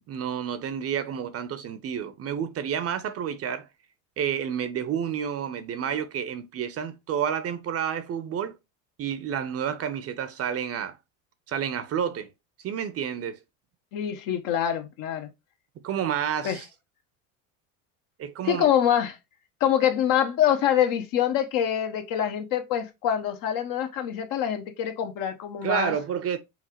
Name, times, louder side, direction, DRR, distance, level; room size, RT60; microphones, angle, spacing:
voice 1, 0.1-3.7 4.2-8.5 9.0-11.0 11.5-12.3 12.6-13.4 15.8-16.7 18.2-18.7 25.6-26.4, right 8 dB, 40° right, 0.6 m, -30 dB
voice 2, 13.9-15.3 16.4-16.6 18.4-19.2 19.6-25.9, left 10 dB, 55° left, 0.9 m, -25 dB
5.6 x 2.3 x 2.9 m
supercardioid pair, 95°, 39 cm